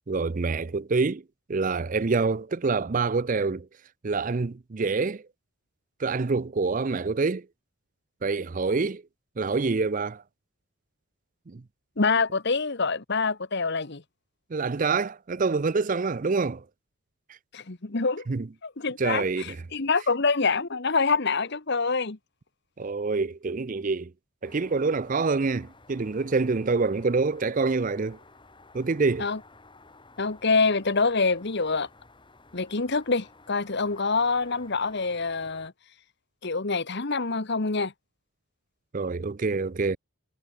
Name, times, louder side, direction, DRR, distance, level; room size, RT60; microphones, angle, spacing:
voice 1, 0.1-1.2 1.5-3.7 4.0-5.2 6.0-7.4 8.2-9.0 9.4-10.2 11.5-11.6 14.5-16.6 18.3-18.5 19.0-19.6 22.8-24.1 24.4-28.2 28.7-29.3 38.9-40.0, right 4 dB, 35° right, 0.5 m, -26 dB
voice 2, 12.0-14.0 17.5-18.2 18.6-22.2 29.2-29.4 30.2-31.9 32.5-35.7 36.4-37.9, left 4 dB, 50° left, 1.2 m, -26 dB
sound 1, 24.4-35.7, left 3 dB, 20° left, 3.6 m, -54 dB
head